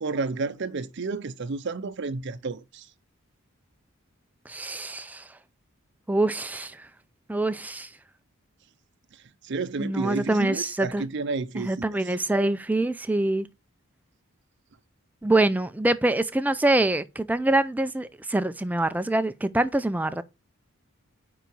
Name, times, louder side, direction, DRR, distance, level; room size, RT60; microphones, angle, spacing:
voice 1, 0.0-2.9 9.4-12.0, right 4 dB, 55° right, 0.5 m, -31 dB
voice 2, 4.5-5.3 6.1-6.9 7.3-7.9 9.8-11.0 11.6-13.5 15.2-20.2, right 2 dB, 10° right, 0.4 m, -25 dB
9.2 x 4.0 x 4.6 m
head